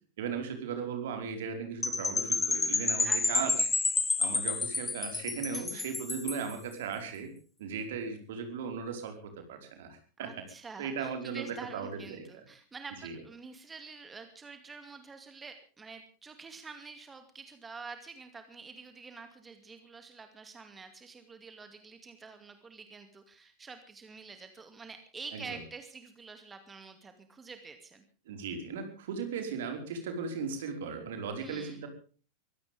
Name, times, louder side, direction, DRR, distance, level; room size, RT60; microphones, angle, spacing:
voice 1, 0.2-3.7 4.2-7.3 7.6-10.4 10.8-12.4 13.0-13.2 25.3-25.4 28.3-31.9, right 6 dB, 55° right, 5 dB, 4.9 m, -37 dB
Percussion / Wind chime, 1.8-6.5, left 3 dB, 10° left, 1.6 m, -30 dB
voice 2, 3.0-3.5 5.5-5.9 10.2-28.0 31.4-31.9, right 4 dB, 15° right, 7 dB, 2.4 m, -47 dB
23.5 x 17.0 x 3.6 m, 0.39 s
figure-of-eight pair, 90°, 0 cm